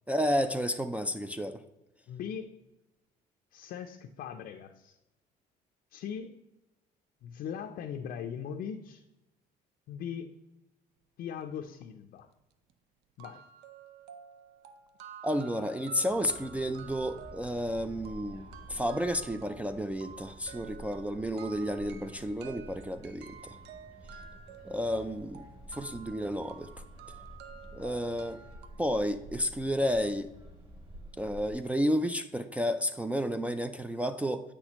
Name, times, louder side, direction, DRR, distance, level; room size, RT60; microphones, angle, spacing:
voice 1, 0.1-1.6 15.2-23.6 24.6-26.7 27.7-28.4 28.8-30.3 31.2-34.4, equal, 10° right, 5 dB, 0.3 m, -31 dB
voice 2, 2.1-2.5 3.5-5.0 5.9-6.4 7.2-9.0 9.9-10.3 11.2-12.3 13.2-13.4, left 8 dB, 65° left, 4 dB, 0.5 m, -39 dB
sound 1, 12.2-12.3 12.7-12.8 13.2-28.7, right 8 dB, 85° right, 0.6 m, -51 dB
sound 2, 16.1-31.5, equal, 30° right, 2.4 m, -50 dB
8.0 x 6.0 x 2.9 m, 0.99 s
cardioid pair, 110°, 17 cm